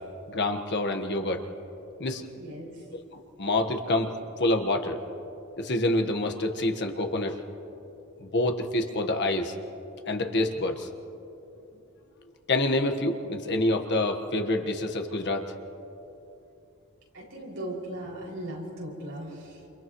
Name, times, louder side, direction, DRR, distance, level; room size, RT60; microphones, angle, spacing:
voice 1, 0.3-1.4 2.0-2.3 3.4-4.1 4.4-5.0 5.6-7.4 8.3-9.5 10.1-10.9 12.5-15.5, left 2 dB, 55° left, 5 dB, 1.4 m, -27 dB
voice 2, 2.3-2.9 17.1-19.7, right 1 dB, 70° right, -4 dB, 6.1 m, -38 dB
29.0 x 29.0 x 3.1 m, 2.9 s
head